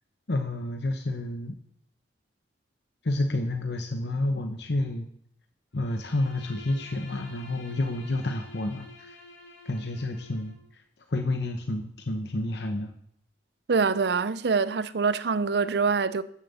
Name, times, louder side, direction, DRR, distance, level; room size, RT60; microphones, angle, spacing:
voice 1, 0.3-1.6 3.0-5.1 5.7-9.2 9.6-10.8 11.1-12.9, left 2 dB, 70° left, 0.9 m, -30 dB
Bowed string instrument, 5.7-10.7, left 2 dB, 90° left, 3.7 m, -49 dB
voice 2, 13.7-16.2, right 5 dB, 65° right, 0.5 m, -25 dB
10.5 x 7.3 x 7.0 m
head